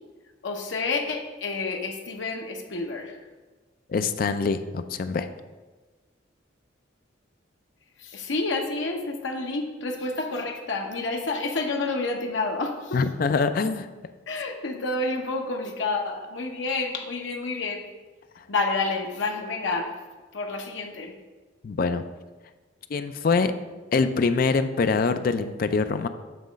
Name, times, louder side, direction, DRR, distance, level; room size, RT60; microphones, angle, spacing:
voice 1, 0.4-3.2 8.0-13.0 14.3-17.8 18.5-19.9 20.3-21.1, left 3 dB, 75° left, 2 dB, 0.8 m, -29 dB
voice 2, 3.9-5.3 12.9-13.9 21.6-22.0 22.9-23.5 23.9-26.1, left 4 dB, 45° left, 10 dB, 0.3 m, -24 dB
7.6 x 3.0 x 5.1 m, 1.3 s
head